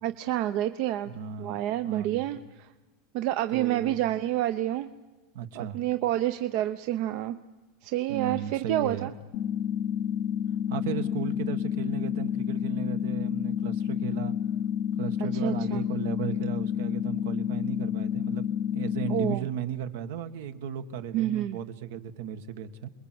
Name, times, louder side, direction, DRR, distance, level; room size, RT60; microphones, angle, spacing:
voice 1, 0.0-1.1 1.4-2.7 3.1-4.9 5.5-7.4 7.8-9.1 15.2-15.8 19.1-19.5 21.1-21.6, right 13 dB, 50° right, 10 dB, 0.7 m, -28 dB
voice 2, 1.1-2.3 3.5-4.0 5.3-5.8 8.1-9.1 10.7-14.3 15.0-22.9, right 9 dB, 75° right, 9 dB, 1.7 m, -36 dB
sound 1, 9.3-19.3, left 9 dB, 40° left, 0.7 m, -29 dB
28.0 x 21.0 x 7.9 m, 1.2 s
supercardioid pair, 160°, 0 cm